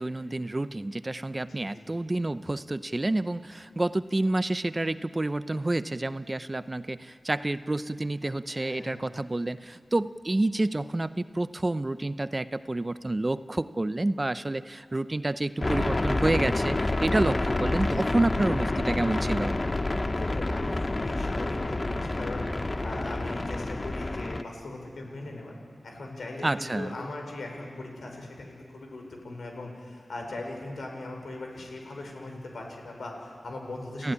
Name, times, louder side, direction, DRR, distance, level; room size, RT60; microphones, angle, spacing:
voice 1, 0.0-19.5 26.4-27.0 34.0-34.1, right 2 dB, 30° right, 13 dB, 0.7 m, -29 dB
voice 2, 1.5-2.0 8.5-9.1 20.1-25.5 25.8-34.1, left 2 dB, 75° left, 2 dB, 5.5 m, -40 dB
sound 1, 15.6-24.4, left 2 dB, 30° left, 0.9 m, -28 dB
28.5 x 15.0 x 9.8 m, 2.3 s
cardioid pair, 60°, 0 cm